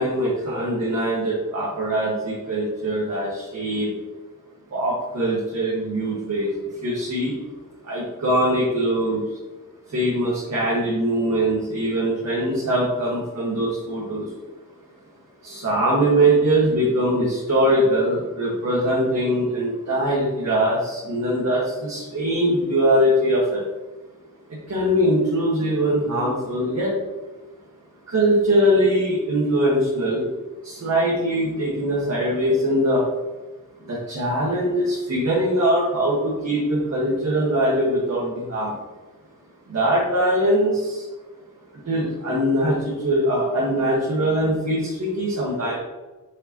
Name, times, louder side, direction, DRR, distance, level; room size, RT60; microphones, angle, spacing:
voice 1, 0.0-3.9 4.7-6.5 6.8-7.3 7.9-9.2 9.9-14.2 15.4-23.6 24.7-26.9 28.1-30.3 30.6-33.0 33.9-38.7 39.7-41.0 41.9-42.8 43.0-45.8, right 1 dB, 50° right, -7 dB, 1.8 m, -22 dB
7.0 x 6.7 x 3.0 m, 1.2 s
wide cardioid pair, 170°, 34 cm